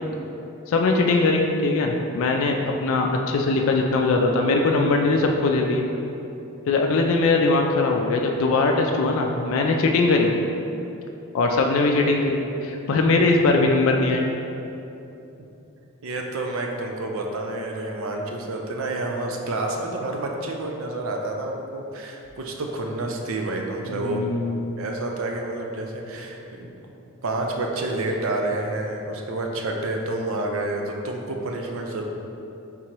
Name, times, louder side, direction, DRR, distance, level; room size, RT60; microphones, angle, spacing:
voice 1, 0.7-5.8 6.7-10.3 11.3-14.2 23.9-24.7, left 3 dB, 70° left, 1 dB, 0.3 m, -21 dB
voice 2, 16.0-24.2 24.8-26.7 27.2-32.0, right 2 dB, 70° right, 1 dB, 0.5 m, -29 dB
3.7 x 2.9 x 4.5 m, 2.9 s
head